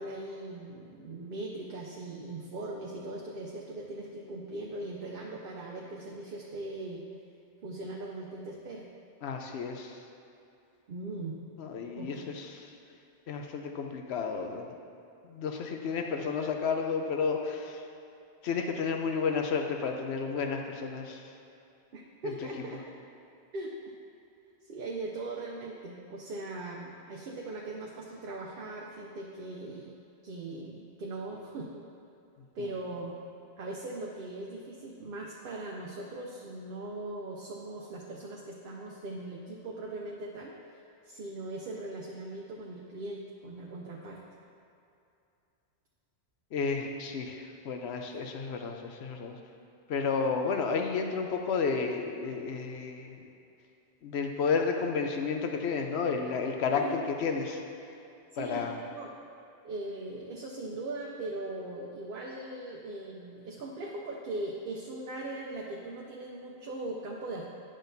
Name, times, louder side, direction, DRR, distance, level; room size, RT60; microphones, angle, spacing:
voice 1, 0.0-7.0 7.6-8.9 10.9-11.4 12.0-12.3 21.9-22.8 23.5-23.7 24.6-29.9 30.2-31.8 32.5-40.5 41.0-44.2 56.8-57.0 58.3-58.6 58.9-59.1 59.6-67.4, right 2 dB, 60° right, -2 dB, 0.8 m, -40 dB
voice 2, 9.2-10.0 11.6-12.7 13.3-14.7 15.2-17.8 18.4-21.2 22.2-22.3 32.6-32.7 46.5-49.4 49.9-53.2 54.0-57.6 58.4-58.7, left 5 dB, 80° left, 3 dB, 0.9 m, -32 dB
9.8 x 6.3 x 2.6 m, 2.6 s
omnidirectional pair, 1.1 m